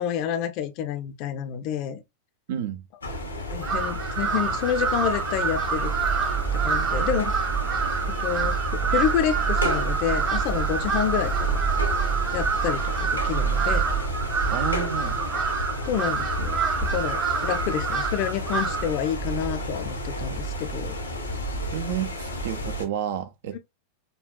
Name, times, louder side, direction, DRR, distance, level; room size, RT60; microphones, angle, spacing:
voice 1, 0.0-2.0 3.5-5.9 6.5-7.3 8.1-11.6 12.3-13.9 15.9-16.6 16.9-21.0, left 9 dB, 45° left, 0.5 m, -28 dB
voice 2, 2.5-2.8 14.5-15.2 21.7-23.6, right 9 dB, 55° right, 0.5 m, -30 dB
sound 1, 3.0-22.8, equal, 80° left, 0.8 m, -31 dB
Crow, 3.6-19.0, right 6 dB, 30° right, 1.0 m, -28 dB
sound 2, 5.8-14.0, right 8 dB, 10° right, 0.7 m, -29 dB
5.3 x 2.3 x 2.2 m
figure-of-eight pair, 90°, 0 cm